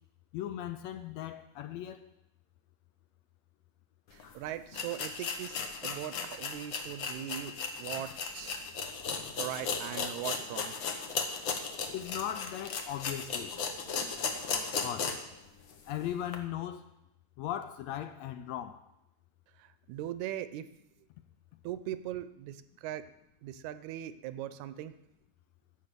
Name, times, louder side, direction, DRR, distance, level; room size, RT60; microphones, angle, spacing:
voice 1, 0.3-2.1 11.9-13.5 14.8-15.1 15.9-16.8 17.4-18.8, left 11 dB, 80° left, 10 dB, 1.7 m, -38 dB
voice 2, 4.1-8.6 9.4-10.8 19.6-20.7 21.6-23.1 23.4-24.9, right 12 dB, 80° right, 12 dB, 1.9 m, -40 dB
sound 1, 4.2-4.3 4.7-15.3 15.7-15.8 16.3-16.4, left 5 dB, 60° left, 1.3 m, -36 dB
15.0 x 5.5 x 6.7 m, 0.86 s
omnidirectional pair, 3.4 m